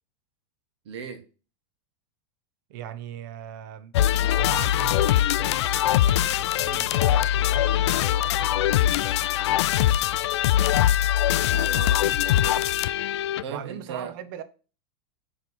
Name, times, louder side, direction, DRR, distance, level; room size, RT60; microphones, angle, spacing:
voice 1, 0.8-1.2 11.5-12.7 13.4-14.1, right 6 dB, 75° right, 1.3 m, -38 dB
voice 2, 2.7-3.9 4.4-10.8 13.5-14.4, right 10 dB, 45° right, 0.7 m, -40 dB
sound 1, 3.9-13.4, left 12 dB, 75° left, 0.4 m, -22 dB
9.0 x 3.2 x 4.3 m
supercardioid pair, 165°, 14 cm